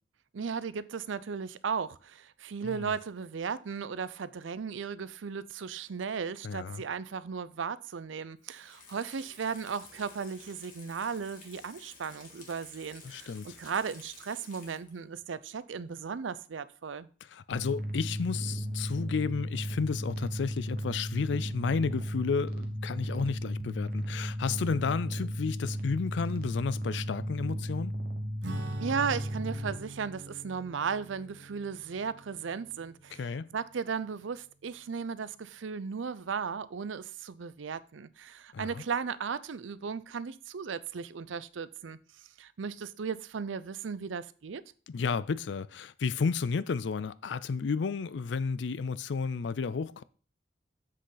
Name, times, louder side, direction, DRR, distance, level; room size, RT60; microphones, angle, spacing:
voice 1, 0.3-17.1 28.8-33.3 33.5-42.0 42.4-44.6, right 6 dB, 90° right, 0.5 m, -36 dB
voice 2, 6.4-6.8 13.0-13.6 17.2-28.0 33.1-33.5 38.5-38.8 44.9-50.0, left 5 dB, 75° left, 0.4 m, -32 dB
Water tap faucet / Sink (filling or washing), 8.4-15.1 15.5-15.6, left 4 dB, 45° left, 1.9 m, -53 dB
sound 1, 17.5-29.7, equal, 50° right, 1.1 m, -35 dB
Acoustic guitar / Strum, 28.4-34.4, right 1 dB, 70° right, 1.0 m, -45 dB
7.6 x 6.5 x 3.9 m
head